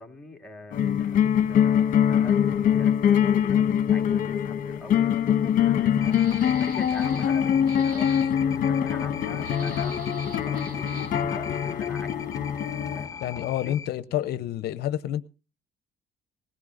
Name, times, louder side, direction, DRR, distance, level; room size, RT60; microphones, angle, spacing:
voice 1, 0.0-9.9 10.3-12.2 12.9-13.8, left 3 dB, 5° left, 2.4 m, -44 dB
sound 1, 0.7-13.1, left 9 dB, 55° left, 1.2 m, -23 dB
sound 2, 6.0-13.9, left 5 dB, 20° left, 1.5 m, -39 dB
sound 3, 6.1-7.3 7.7-8.3 9.4-11.2, right 3 dB, 55° right, 3.6 m, -45 dB
voice 2, 13.2-15.2, left 12 dB, 70° left, 0.6 m, -28 dB
20.0 x 16.5 x 2.5 m
cardioid pair, 110°, 17 cm